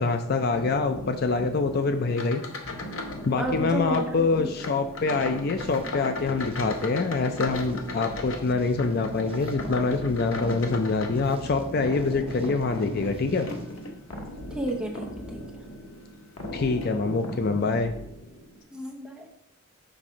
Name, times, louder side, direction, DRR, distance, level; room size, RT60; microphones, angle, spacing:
voice 1, 0.0-2.4 3.2-13.5 16.5-17.9, left 4 dB, 45° left, 7 dB, 0.4 m, -25 dB
sound 1, 0.5-18.6, equal, 85° left, 1.0 m, -40 dB
sound 2, 2.1-3.3 3.5-4.1 4.6-11.7 12.2-14.0 14.6-14.9 15.4-15.5 16.4-16.5 16.8-17.0, left 3 dB, 65° left, 0.8 m, -38 dB
voice 2, 3.4-4.5 14.5-15.4 18.7-19.3, right 1 dB, 5° right, -1 dB, 0.8 m, -31 dB
sound 3, 5.6-14.4, right 2 dB, 25° right, 0.4 m, -43 dB
5.9 x 3.6 x 5.0 m, 0.74 s
head